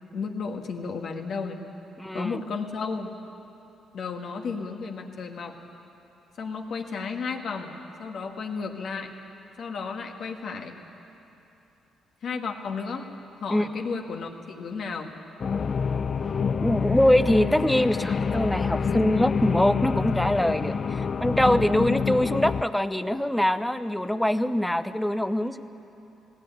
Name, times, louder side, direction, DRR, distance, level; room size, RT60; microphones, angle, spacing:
voice 1, 0.1-1.6 2.1-3.1 3.9-5.6 6.4-9.1 9.6-10.8 12.2-13.1 13.4-15.1, left 5 dB, 60° left, 3 dB, 1.9 m, -33 dB
voice 2, 2.0-2.4 13.5-13.7 16.6-25.6, left 1 dB, 5° left, 12 dB, 0.8 m, -23 dB
sound 1, 15.4-22.6, left 6 dB, 45° left, 0.6 m, -27 dB
19.0 x 16.5 x 9.4 m, 3.0 s
cardioid pair, 90°, 0 cm